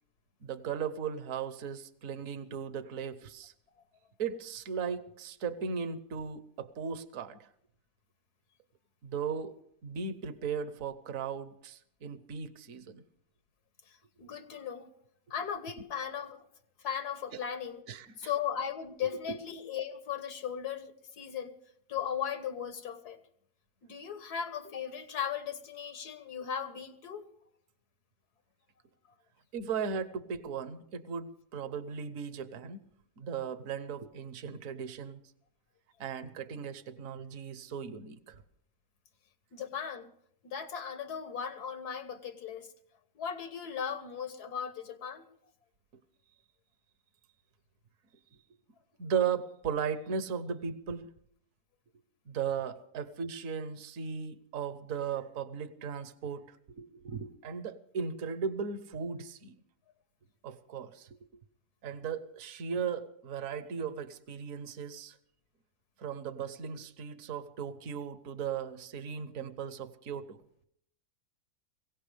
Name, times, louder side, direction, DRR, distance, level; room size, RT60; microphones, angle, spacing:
voice 1, 0.4-3.5 4.2-7.5 9.0-9.6 9.8-13.0 17.3-17.4 17.9-18.3 19.3-19.4 29.5-32.8 33.2-35.2 36.0-38.4 49.0-51.1 52.3-59.5 60.4-61.1 61.8-65.2 66.0-70.4, right 6 dB, 65° right, 1.3 m, -37 dB
voice 2, 13.9-14.9 15.3-16.5 16.8-17.8 18.2-21.6 21.9-23.2 23.8-27.2 39.5-40.1 40.4-42.7 43.2-45.2, left 8 dB, 90° left, 1.9 m, -37 dB
22.0 x 17.5 x 3.4 m
omnidirectional pair, 1.6 m